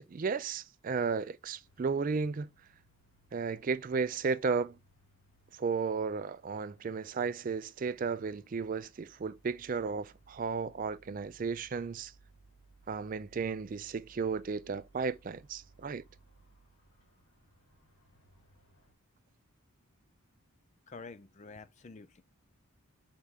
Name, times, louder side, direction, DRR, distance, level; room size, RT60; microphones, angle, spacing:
voice 1, 0.0-2.5 3.3-4.8 5.6-12.1 12.9-16.0, right 5 dB, 35° right, 0.3 m, -34 dB
sound 1, 1.6-18.9, right 3 dB, 60° left, 3.7 m, -64 dB
voice 2, 20.9-22.2, left 4 dB, 30° left, 0.4 m, -48 dB
5.7 x 4.7 x 3.5 m
head